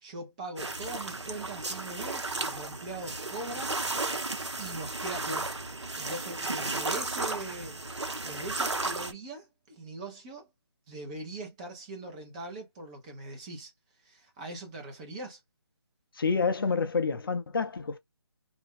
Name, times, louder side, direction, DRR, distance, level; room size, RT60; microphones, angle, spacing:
voice 1, 0.0-3.8 4.6-5.6 6.0-7.8 8.2-10.5 10.9-13.7 14.0-15.4, right 2 dB, 15° right, 0.6 m, -41 dB
sound 1, 0.6-9.1, right 3 dB, 85° right, 0.7 m, -34 dB
voice 2, 16.2-18.0, left 4 dB, 55° left, 0.5 m, -28 dB
2.5 x 2.2 x 3.6 m
figure-of-eight pair, 155°, 14 cm